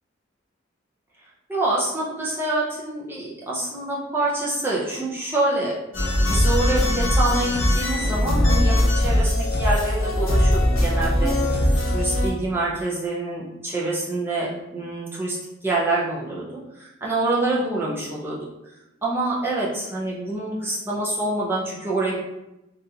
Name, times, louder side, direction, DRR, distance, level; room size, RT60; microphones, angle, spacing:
voice 1, 1.5-5.7 6.3-15.4 15.6-16.5 16.7-18.4 19.0-22.2, right 2 dB, 10° right, -6 dB, 0.6 m, -26 dB
sound 1, 5.9-12.3, left 1 dB, 80° left, 1.0 m, -20 dB
3.6 x 2.6 x 2.8 m, 0.91 s
head